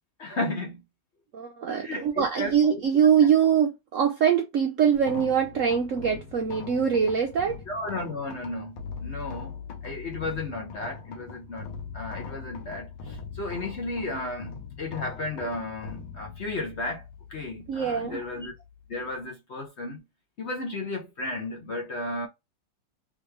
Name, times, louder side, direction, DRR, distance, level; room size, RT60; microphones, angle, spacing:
voice 1, 0.2-0.8 1.7-2.8 7.7-9.5 9.8-17.0 17.3-18.5 18.9-20.0 20.4-22.3, left 2 dB, 50° left, 0.9 m, -34 dB
voice 2, 1.3-7.6 17.7-18.2, right 7 dB, 70° right, 0.7 m, -23 dB
sound 1, 4.9-19.2, left 6 dB, 80° left, 1.5 m, -41 dB
3.6 x 3.1 x 3.2 m
omnidirectional pair, 1.9 m